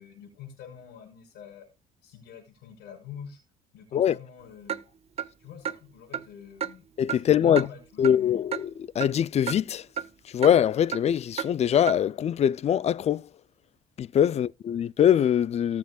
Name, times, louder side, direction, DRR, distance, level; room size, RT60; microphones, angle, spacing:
voice 1, 0.0-1.7 2.0-3.4 3.7-4.8 5.4-6.9 7.1-8.5 14.3-14.4, left 8 dB, 80° left, 5.4 m, -45 dB
Clock, 4.7-4.8 5.2-5.3 5.7-5.8 6.1-6.3 6.6-6.7 7.1-7.2 7.6-7.7 8.0-8.2 8.5-8.6 9.0-9.1 9.5-9.6 10.0-10.1 10.4-10.6 10.9-11.0 11.4-11.5 11.9-12.0, right 9 dB, 35° right, 0.7 m, -31 dB
voice 2, 7.0-7.6 8.0-8.5 9.0-9.8 10.3-13.2 14.0-15.8, left 9 dB, 40° left, 0.4 m, -22 dB
18.0 x 7.4 x 2.4 m
cardioid pair, 110°, 17 cm